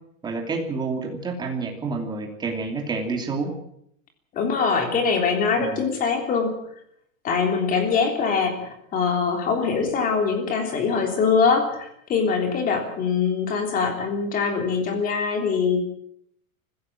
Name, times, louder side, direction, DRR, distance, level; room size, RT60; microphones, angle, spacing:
voice 1, 0.2-3.5 5.6-5.8, right 4 dB, 10° right, 2 dB, 2.8 m, -28 dB
voice 2, 4.3-6.5 7.2-15.8, left 5 dB, 20° left, 5 dB, 3.4 m, -23 dB
24.0 x 16.0 x 7.4 m, 0.72 s
supercardioid pair, 175°, 41 cm